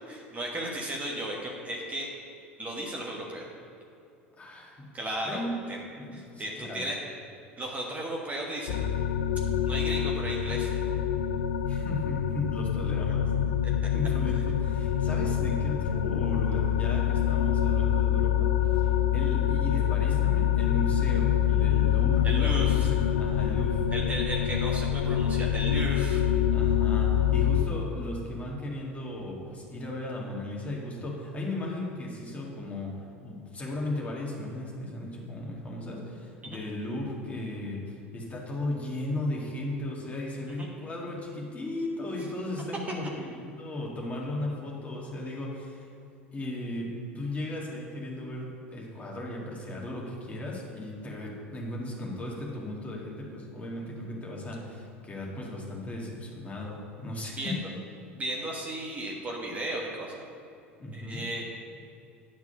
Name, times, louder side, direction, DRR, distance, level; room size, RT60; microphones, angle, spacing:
voice 1, 0.1-2.1 2.6-3.5 4.9-5.8 6.1-7.0 7.6-8.8 9.7-10.8 22.2-22.9 23.9-26.2 36.4-36.6 40.6-40.7 57.4-57.6 58.2-60.2 60.9-61.4, right 1 dB, 20° right, -2 dB, 1.4 m, -35 dB
voice 2, 4.4-4.9 5.2-5.5 6.0-6.9 11.6-13.5 13.9-23.8 26.5-45.9 46.3-57.6 60.8-61.2, left 1 dB, 20° left, -3 dB, 2.0 m, -36 dB
sound 1, 8.7-27.6, left 10 dB, 65° left, 0.5 m, -26 dB
9.8 x 4.7 x 6.9 m, 2.6 s
figure-of-eight pair, 75°, 7 cm